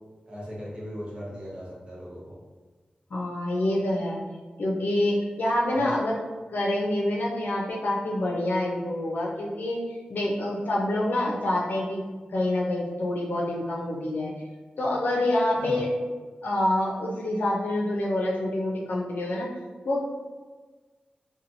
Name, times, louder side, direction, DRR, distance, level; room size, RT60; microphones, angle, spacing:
voice 1, 0.3-2.4 5.7-6.0 15.5-15.8, equal, 35° right, -6 dB, 0.8 m, -37 dB
voice 2, 3.1-4.2 4.6-6.1 6.5-9.8 10.1-12.0 12.3-14.3 14.8-15.9 16.4-19.5 19.8-20.0, left 1 dB, 70° left, -3 dB, 0.5 m, -26 dB
2.9 x 2.2 x 2.6 m, 1.3 s
wide cardioid pair, 120°, 3 cm